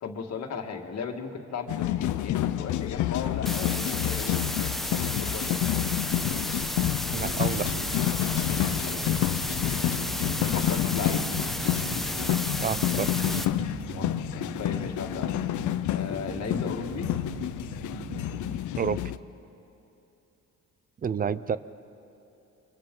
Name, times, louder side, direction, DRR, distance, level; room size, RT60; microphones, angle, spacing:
voice 1, 0.0-5.6 8.6-9.1 9.6-9.8 10.4-11.4 13.9-15.4 15.9-17.1 21.2-21.6, left 5 dB, 60° left, 3 dB, 1.9 m, -37 dB
sound 1, 1.7-19.2, left 13 dB, 75° left, 0.6 m, -29 dB
sound 2, 3.5-13.5, left 1 dB, ahead, 0.9 m, -33 dB
voice 2, 7.1-7.7 12.6-13.4 18.8-19.0 21.0-21.6, right 7 dB, 30° right, 16 dB, 0.6 m, -29 dB
sound 3, 7.2-18.6, right 6 dB, 75° right, 1.7 m, -40 dB
29.5 x 24.5 x 3.9 m, 3.0 s
cardioid pair, 90°, 30 cm